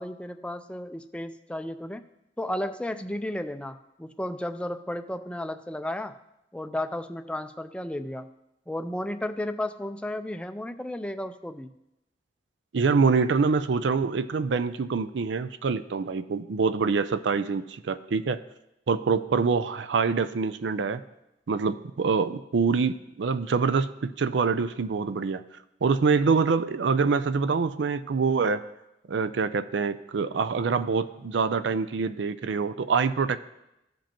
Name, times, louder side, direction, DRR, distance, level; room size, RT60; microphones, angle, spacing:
voice 1, 0.0-2.0 2.4-6.2 6.5-8.3 8.7-11.7, left 1 dB, 5° left, 9 dB, 0.4 m, -33 dB
voice 2, 12.7-18.4 18.9-21.0 21.5-25.4 25.8-28.6 29.1-33.4, right 5 dB, 80° right, 13 dB, 0.4 m, -25 dB
15.5 x 5.2 x 2.9 m, 0.88 s
head